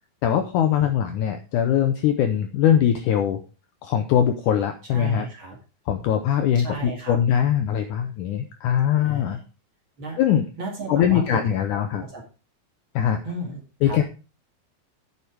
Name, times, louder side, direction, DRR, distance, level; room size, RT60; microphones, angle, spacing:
voice 1, 0.2-3.4 3.8-5.3 5.9-9.4 10.2-10.5 10.9-12.0 13.0-13.2 13.8-14.0, left 9 dB, 75° left, 7 dB, 1.9 m, -21 dB
voice 2, 4.9-5.6 6.5-7.2 9.0-9.4 10.0-10.2 10.6-12.2 13.2-14.0, right 2 dB, 35° right, -1 dB, 2.6 m, -35 dB
8.7 x 7.2 x 4.7 m, 0.32 s
omnidirectional pair, 4.3 m